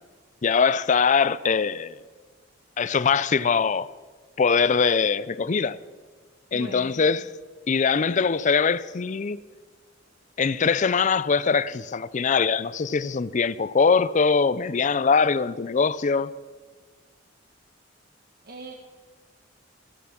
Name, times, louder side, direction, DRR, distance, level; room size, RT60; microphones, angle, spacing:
voice 1, 0.4-2.0 2.8-3.9 4.4-5.8 6.5-7.3 7.7-9.4 10.4-16.3, left 5 dB, 40° left, 0.4 m, -22 dB
voice 2, 6.5-7.0 18.4-18.7, right 2 dB, 50° right, 1.3 m, -40 dB
15.0 x 12.0 x 5.9 m
head